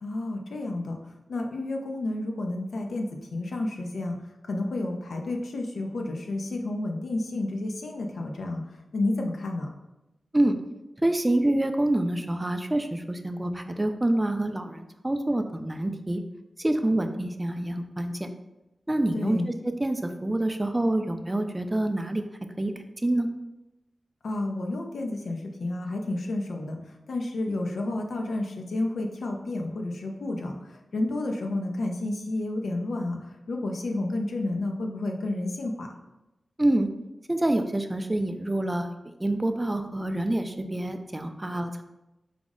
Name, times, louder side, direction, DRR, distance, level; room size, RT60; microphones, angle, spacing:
voice 1, 0.0-1.0 1.3-4.2 4.4-8.6 8.9-9.7 19.1-19.5 24.2-36.0, left 2 dB, 85° left, 2 dB, 0.5 m, -31 dB
voice 2, 11.0-16.2 16.6-18.3 18.9-19.4 19.8-22.2 22.6-23.3 36.6-36.9 37.3-41.8, right 1 dB, 20° right, 7 dB, 0.3 m, -27 dB
4.9 x 2.0 x 3.6 m, 0.96 s
wide cardioid pair, 75°, 0 cm